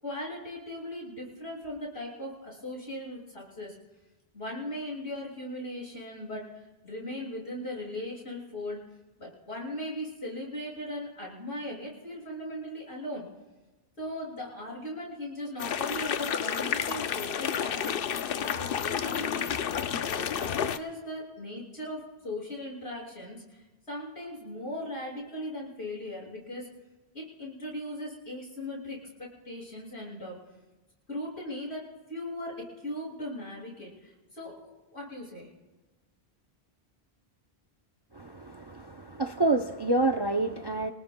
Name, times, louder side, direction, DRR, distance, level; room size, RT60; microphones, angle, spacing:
voice 1, 0.0-3.7 4.3-6.4 6.8-8.8 9.2-13.3 14.0-18.0 18.4-19.5 20.1-26.7 27.1-30.4 31.1-35.5, left 1 dB, 85° left, -4 dB, 6.3 m, -38 dB
sound 1, 15.6-20.8, left 8 dB, 65° left, 0.8 m, -30 dB
voice 2, 38.1-40.9, right 2 dB, 30° right, 5 dB, 0.5 m, -28 dB
26.0 x 19.0 x 2.2 m, 1.1 s
omnidirectional pair, 1.1 m